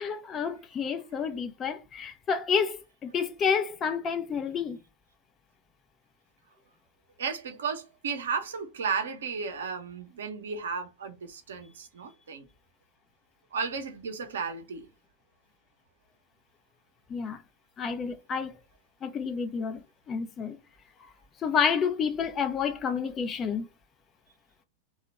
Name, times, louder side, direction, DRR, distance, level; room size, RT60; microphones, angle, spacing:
voice 1, 0.0-4.8 17.1-17.4 17.8-18.6 19.0-19.8 20.1-20.6 21.4-23.7, left 6 dB, 25° left, 0.6 m, -29 dB
voice 2, 7.2-12.5 13.5-14.9, right 5 dB, 65° right, 0.8 m, -34 dB
2.9 x 2.4 x 4.1 m
figure-of-eight pair, 90°, 0 cm